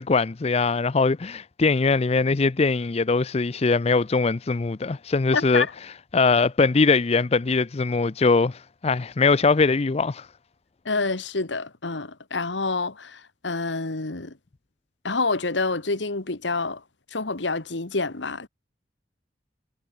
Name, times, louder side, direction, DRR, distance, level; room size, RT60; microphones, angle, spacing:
voice 1, 0.0-5.7 6.1-10.3, left 4 dB, 35° left, 0.5 m, -21 dB
voice 2, 5.3-5.7 10.9-14.3 15.0-16.8 17.1-18.5, left 3 dB, 80° left, 1.7 m, -27 dB
head